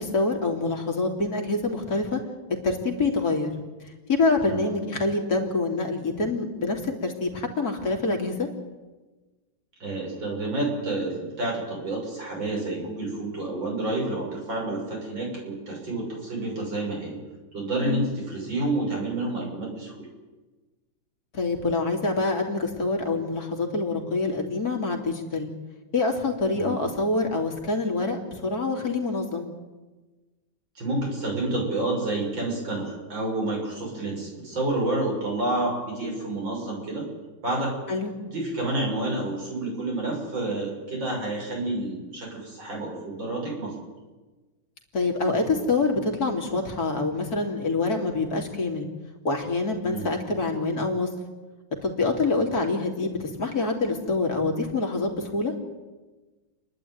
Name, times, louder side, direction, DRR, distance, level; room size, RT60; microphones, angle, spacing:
voice 1, 0.0-2.2 2.6-3.5 3.8-8.5 17.8-18.1 21.3-25.5 25.9-29.5 37.9-38.1 44.9-48.9 49.2-51.1 51.8-55.5, left 3 dB, 50° left, 2 dB, 3.3 m, -26 dB
voice 2, 9.8-17.2 17.5-20.1 26.6-26.8 30.8-37.1 37.4-37.7 38.3-43.7 49.9-50.0, right 2 dB, 75° right, -2 dB, 7.4 m, -29 dB
30.0 x 11.5 x 9.3 m, 1.2 s
omnidirectional pair, 2.1 m